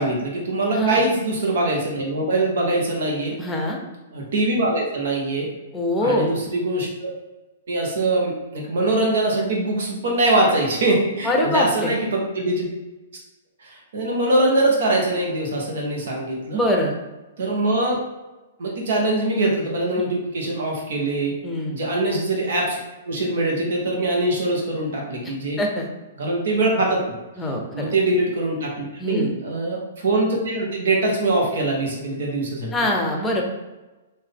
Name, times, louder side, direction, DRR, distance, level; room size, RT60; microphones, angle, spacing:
voice 1, 0.0-3.4 4.1-5.5 6.0-6.9 7.7-12.6 13.6-16.6 17.4-18.0 18.6-21.3 21.7-22.8 23.0-25.6 26.2-27.0 27.7-32.7, right 2 dB, 70° right, -1 dB, 1.2 m, -23 dB
voice 2, 3.4-3.8 5.7-6.3 11.2-11.9 16.5-16.9 20.0-20.1 21.4-21.7 25.6-25.9 27.4-27.9 29.0-29.4 32.7-33.4, left 1 dB, 10° left, 1 dB, 0.7 m, -23 dB
3.7 x 2.7 x 3.6 m, 1.1 s
hypercardioid pair, 125°, 0 cm